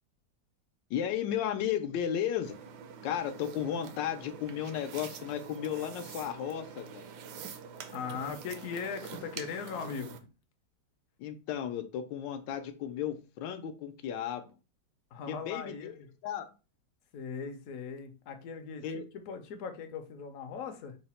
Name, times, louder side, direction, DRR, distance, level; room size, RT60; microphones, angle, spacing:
voice 1, 0.9-2.5 3.0-7.1 11.2-14.5 15.3-15.9 16.2-16.4 18.8-19.0, left 9 dB, 90° left, 7 dB, 1.3 m, -34 dB
sound 1, 2.4-10.2, right 7 dB, 75° right, 1.1 m, -46 dB
voice 2, 7.9-10.2 15.1-16.1 17.1-21.0, left 6 dB, 65° left, 6 dB, 0.9 m, -39 dB
3.9 x 2.1 x 4.1 m, 0.32 s
omnidirectional pair, 1.9 m